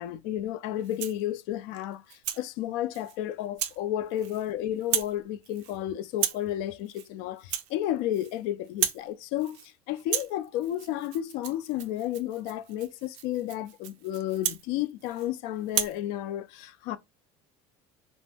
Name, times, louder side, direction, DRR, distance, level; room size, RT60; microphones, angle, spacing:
voice 1, 0.0-17.0, left 12 dB, 70° left, 0.4 m, -32 dB
Rattle (instrument), 0.8-1.3 1.7-2.4 2.9-3.2 3.6-3.8 4.1-4.5 4.8-5.2 5.4-5.8 6.1-6.5 6.9-7.1 7.4-8.4 8.6-9.1 9.4-9.7 10.0-15.3 15.7-16.0, right 11 dB, 90° right, 0.5 m, -34 dB
2.6 x 2.0 x 3.3 m
cardioid pair, 130°, 15 cm